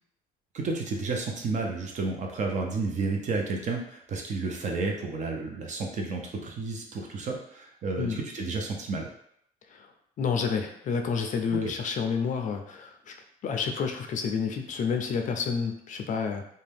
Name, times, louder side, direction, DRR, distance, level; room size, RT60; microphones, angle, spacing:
voice 1, 0.5-9.1 11.6-11.7, right 3 dB, 45° right, 1 dB, 0.6 m, -31 dB
voice 2, 10.2-13.1 13.4-16.5, left 6 dB, 50° left, 4 dB, 0.4 m, -29 dB
2.6 x 2.2 x 3.4 m, 0.70 s
cardioid pair, 110°, 17 cm